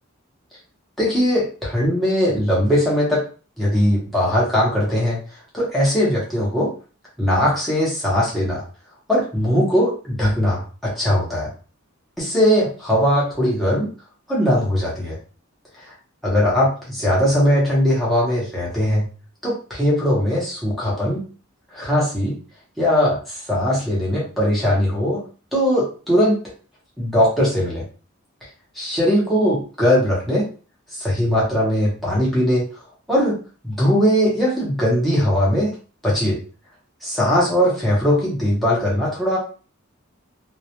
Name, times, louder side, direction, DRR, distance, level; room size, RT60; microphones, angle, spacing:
voice 1, 1.0-3.2 3.6-5.2 5.5-6.7 7.2-8.6 9.1-11.5 12.2-13.9 14.3-15.2 15.8-15.9 16.2-19.1 19.4-21.2 21.7-22.3 22.8-25.2 25.5-26.4 27.0-27.8 28.7-30.4 30.9-32.7 33.1-33.4 33.6-35.7 36.0-36.4 37.0-39.4, equal, ahead, -7 dB, 0.8 m, -20 dB
2.3 x 2.1 x 2.8 m, 0.37 s
head